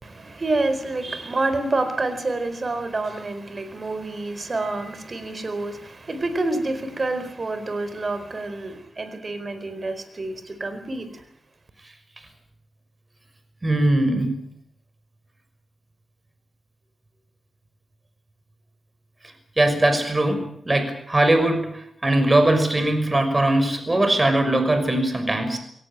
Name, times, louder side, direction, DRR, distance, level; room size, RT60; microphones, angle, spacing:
voice 1, 0.0-11.2, right 2 dB, 45° right, 4.4 m, -28 dB
voice 2, 13.6-14.3 19.6-25.6, right 1 dB, 30° right, 6.0 m, -20 dB
22.5 x 19.0 x 9.0 m
cardioid pair, 65°, 0 cm